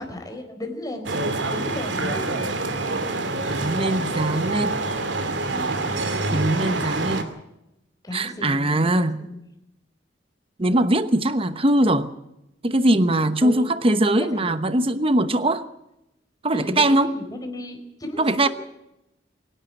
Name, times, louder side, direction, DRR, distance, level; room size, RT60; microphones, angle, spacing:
voice 1, 0.0-2.5 5.5-5.7 8.0-9.5 13.4-13.6 14.2-14.6 16.5-18.5, left 1 dB, 20° left, 4 dB, 4.5 m, -35 dB
sound 1, 1.0-7.2, right 2 dB, 80° right, 2.6 m, -26 dB
voice 2, 3.5-4.8 6.3-7.4 8.1-9.2 10.6-12.1 12.6-15.7 16.4-17.1 18.2-18.5, right 1 dB, 30° right, 11 dB, 1.0 m, -21 dB
24.5 x 11.5 x 9.9 m, 0.86 s
head